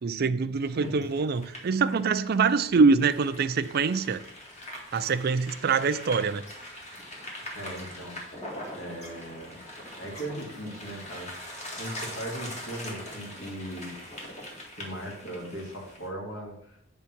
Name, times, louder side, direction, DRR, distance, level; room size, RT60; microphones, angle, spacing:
voice 1, 0.0-4.2 4.9-6.4, right 4 dB, 50° right, 0.4 m, -24 dB
sound 1, 0.6-16.1, left 1 dB, 35° left, 1.9 m, -42 dB
voice 2, 7.5-8.2 8.7-9.6 9.9-13.9 14.7-16.8, right 1 dB, 60° left, 2.3 m, -38 dB
8.4 x 3.6 x 5.9 m
head